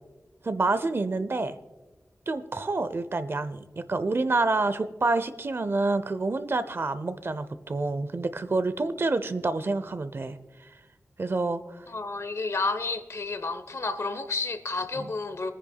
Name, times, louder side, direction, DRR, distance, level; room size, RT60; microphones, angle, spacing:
voice 1, 0.4-1.5 2.3-10.4 11.2-11.8 15.0-15.1, right 3 dB, 50° right, 0.6 m, -28 dB
voice 2, 11.9-15.5, left 3 dB, 65° left, 0.9 m, -31 dB
24.5 x 9.9 x 2.3 m
wide cardioid pair, 80°, 5 cm